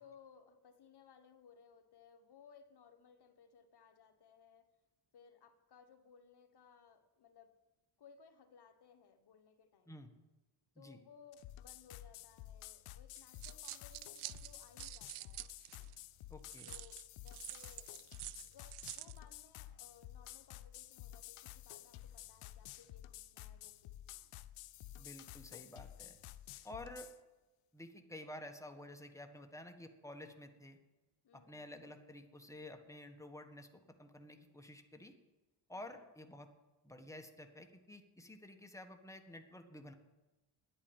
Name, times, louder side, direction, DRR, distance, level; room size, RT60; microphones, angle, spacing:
voice 1, 0.0-4.7 5.1-7.5 8.0-10.0 10.8-15.5 16.6-17.9 18.4-24.3 31.2-31.6 35.9-36.0, left 6 dB, 50° left, 8 dB, 1.4 m, -62 dB
sound 1, 11.3-27.2, left 13 dB, 85° left, 0.7 m, -52 dB
sound 2, 13.2-15.9 16.5-19.2, right 17 dB, 85° right, 0.6 m, -48 dB
voice 2, 16.3-16.7 25.0-26.2 26.6-27.1 27.7-30.8 31.3-33.7 34.0-35.1 35.7-36.5 36.8-39.9, left 1 dB, 5° left, 5 dB, 1.5 m, -51 dB
10.5 x 8.7 x 8.8 m, 1.1 s
cardioid pair, 95°, 49 cm